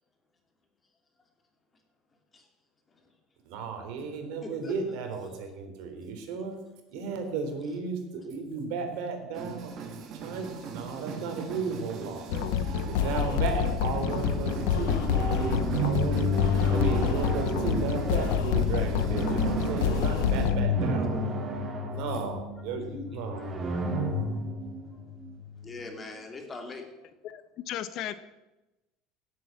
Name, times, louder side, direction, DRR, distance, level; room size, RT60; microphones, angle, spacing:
voice 1, 3.5-6.6 6.9-12.3 12.9-16.2 16.7-21.2 21.9-23.5, right 4 dB, 70° right, 5 dB, 3.5 m, -34 dB
voice 2, 4.4-4.7 10.3-10.4 12.4-13.0 15.6-15.8 19.4-19.5 24.9-25.0 25.6-27.0, left 3 dB, 20° left, 3 dB, 2.7 m, -43 dB
sound 1, 9.3-20.5, right 5 dB, 45° right, 2.4 m, -38 dB
sound 2, 12.3-20.6, left 9 dB, 85° left, 0.9 m, -28 dB
sound 3, 14.1-25.8, left 1 dB, 20° right, 3.2 m, -31 dB
voice 3, 27.2-28.1, left 11 dB, 50° left, 13 dB, 0.9 m, -35 dB
17.0 x 8.3 x 7.3 m, 1.0 s
cardioid pair, 145°, 0 cm